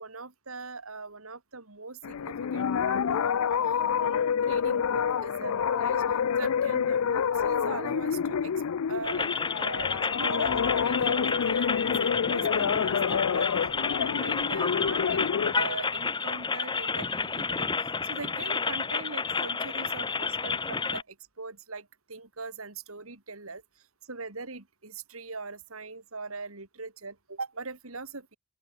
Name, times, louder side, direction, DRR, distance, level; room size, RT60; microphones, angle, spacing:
voice 1, 0.0-6.0 6.4-8.5 8.9-9.3 9.6-13.5 13.9-23.6 24.0-28.4, right 3 dB, 70° right, 3.2 m, -41 dB
sound 1, 2.0-15.5, left 7 dB, 80° left, 0.5 m, -28 dB
sound 2, 9.0-21.0, left 5 dB, 20° left, 0.8 m, -30 dB
Bowed string instrument, 10.4-13.5, equal, 60° left, 5.5 m, -55 dB
open air
head